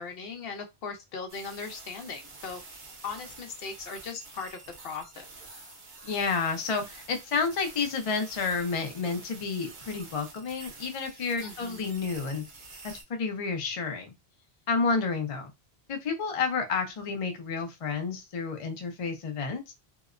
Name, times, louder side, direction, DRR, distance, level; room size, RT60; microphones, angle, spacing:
voice 1, 0.0-2.6 3.0-4.6 4.8-5.3 11.4-12.0, left 5 dB, 70° left, 5 dB, 0.8 m, -39 dB
sound 1, 1.3-13.0, right 3 dB, 70° right, 1.0 m, -48 dB
voice 2, 6.0-12.4 12.8-14.1 14.7-15.5 15.9-19.7, left 4 dB, 45° left, 5 dB, 0.4 m, -30 dB
2.8 x 2.0 x 2.4 m, 0.21 s
omnidirectional pair, 1.1 m